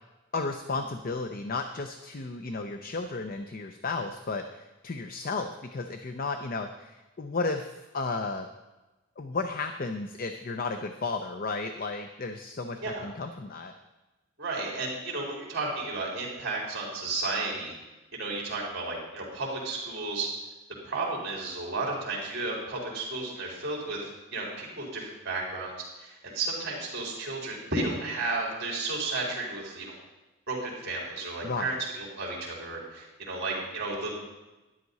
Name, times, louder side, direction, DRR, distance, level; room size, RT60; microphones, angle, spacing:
voice 1, 0.3-8.5 9.2-13.7 31.4-31.8, left 3 dB, 45° left, 7 dB, 0.6 m, -33 dB
voice 2, 14.4-17.7 18.1-20.3 20.8-25.7 26.0-29.9 30.5-34.2, right 3 dB, 55° right, -3 dB, 4.2 m, -33 dB
12.5 x 11.0 x 4.1 m, 1.1 s
head